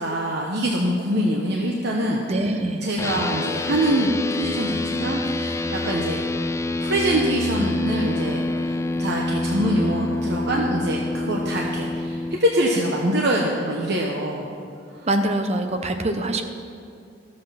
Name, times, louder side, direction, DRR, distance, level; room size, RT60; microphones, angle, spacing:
voice 1, 0.0-2.5 2.8-6.2 6.8-14.5 15.0-15.1, right 1 dB, 60° right, -1 dB, 1.0 m, -24 dB
voice 2, 2.3-2.9 15.1-16.4, right 1 dB, 35° right, 6 dB, 0.8 m, -24 dB
sound 1, 3.0-12.4, left 2 dB, 15° left, 0.3 m, -26 dB
13.0 x 7.7 x 5.7 m, 2.4 s
head